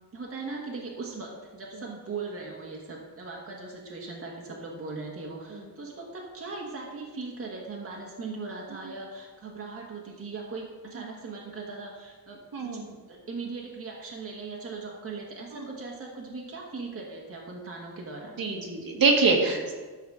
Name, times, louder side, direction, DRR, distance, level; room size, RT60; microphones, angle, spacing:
voice 1, 0.1-18.4, right 4 dB, 35° right, -1 dB, 1.4 m, -39 dB
voice 2, 12.5-12.8 15.5-15.6 18.4-19.7, right 4 dB, 60° right, 0 dB, 1.7 m, -24 dB
12.0 x 4.1 x 6.4 m, 1.4 s
wide cardioid pair, 135°, 40 cm